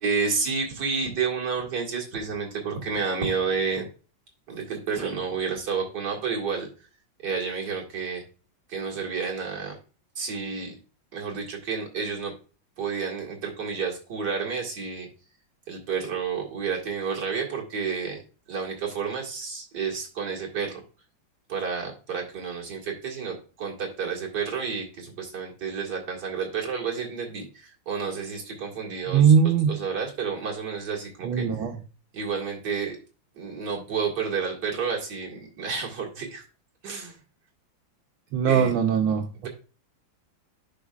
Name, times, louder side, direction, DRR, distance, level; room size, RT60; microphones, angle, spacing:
voice 1, 0.0-3.9 4.5-6.7 7.2-8.2 8.7-9.8 10.2-10.7 11.1-12.3 12.8-15.1 15.7-18.2 18.5-20.8 21.5-29.2 29.7-31.5 32.1-33.0 33.4-36.4 36.8-37.1 38.4-38.7, right 5 dB, 55° right, -2 dB, 2.5 m, -30 dB
voice 2, 29.1-29.7 31.2-31.8 38.3-39.3, right 7 dB, 85° right, 4 dB, 1.6 m, -20 dB
10.5 x 5.1 x 2.4 m, 0.35 s
omnidirectional pair, 2.2 m